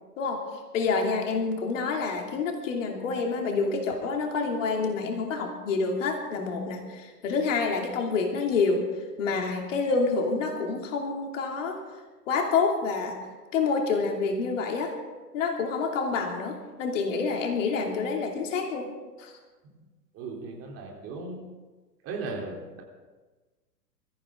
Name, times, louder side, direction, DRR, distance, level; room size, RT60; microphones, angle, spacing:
voice 1, 0.2-8.9 9.2-11.8 12.3-13.2 13.5-15.0 15.3-18.9 19.2-19.4, left 4 dB, 50° left, 2 dB, 2.9 m, -28 dB
voice 2, 20.1-21.4 22.0-22.8, right 3 dB, 30° right, -1 dB, 3.6 m, -36 dB
23.5 x 14.5 x 3.8 m, 1.3 s
figure-of-eight pair, 105°, 49 cm